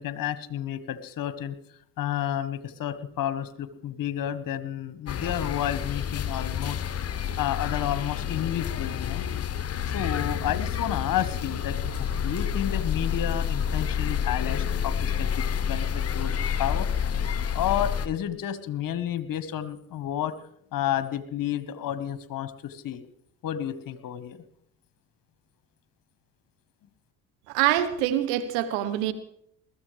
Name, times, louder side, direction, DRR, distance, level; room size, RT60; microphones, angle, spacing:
voice 1, 0.0-1.5 2.0-6.8 7.4-9.2 9.8-16.3 16.6-16.9 17.3-20.3 20.7-23.0 23.4-24.4, left 11 dB, 50° left, 12 dB, 1.3 m, -31 dB
sound 1, 5.1-18.1, left 8 dB, 35° left, 1.0 m, -29 dB
voice 2, 27.5-29.1, right 12 dB, 70° right, 11 dB, 1.1 m, -25 dB
21.0 x 14.0 x 3.3 m, 0.68 s
hypercardioid pair, 55°, 43 cm